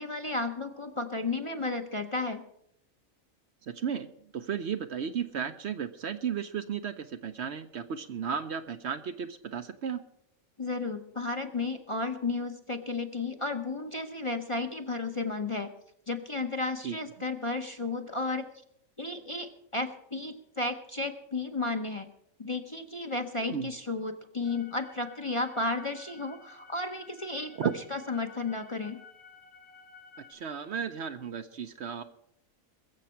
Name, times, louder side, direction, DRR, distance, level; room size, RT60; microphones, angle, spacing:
voice 1, 0.0-2.4 10.6-15.7 16.1-18.5 19.0-22.1 22.4-29.0, left 3 dB, 25° left, 4 dB, 0.8 m, -33 dB
voice 2, 3.6-10.0 16.8-17.0 23.5-23.7 27.6-27.7 30.3-32.0, right 7 dB, 60° right, 9 dB, 0.9 m, -34 dB
sound 1, 24.4-30.3, left 5 dB, 90° left, 2.5 m, -53 dB
21.5 x 7.4 x 5.7 m, 0.73 s
omnidirectional pair, 1.4 m